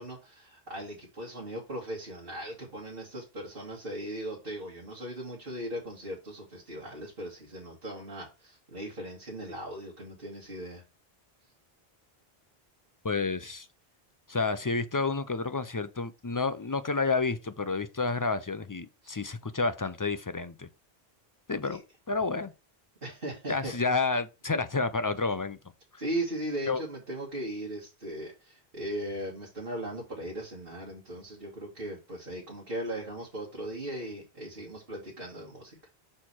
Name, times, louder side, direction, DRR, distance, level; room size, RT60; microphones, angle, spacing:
voice 1, 0.0-10.8 19.0-19.1 21.6-21.8 23.0-23.9 26.0-35.8, right 1 dB, 60° right, 2.2 m, -38 dB
voice 2, 13.0-13.7 14.3-20.7 21.5-21.8 22.1-22.5 23.5-25.6 26.7-26.8, left 4 dB, 35° left, 0.3 m, -30 dB
6.5 x 4.4 x 4.3 m
omnidirectional pair, 1.0 m